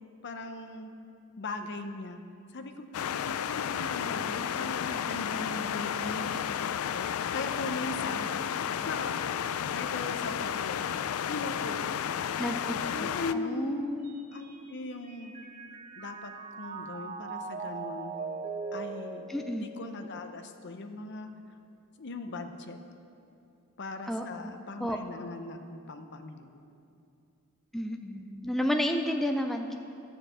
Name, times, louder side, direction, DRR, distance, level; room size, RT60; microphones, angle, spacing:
voice 1, 0.2-0.9 1.4-2.2 2.5-2.9 3.2-6.3 6.9-7.1 7.3-8.3 8.9-9.3 9.7-10.8 11.3-12.4 12.8-13.9 14.3-15.3 16.0-18.2 18.7-19.3 19.5-21.3 22.0-22.8 23.8-26.6, left 2 dB, 55° left, 7 dB, 0.7 m, -39 dB
sound 1, 2.9-13.3, left 8 dB, 75° left, 0.3 m, -32 dB
voice 2, 12.4-14.1 19.3-19.7 24.1-24.5 24.8-25.0 27.7-29.8, equal, ahead, 4 dB, 0.4 m, -31 dB
Mallet percussion, 14.0-20.5, right 4 dB, 40° right, 1.0 m, -40 dB
13.5 x 4.7 x 7.6 m, 2.6 s
head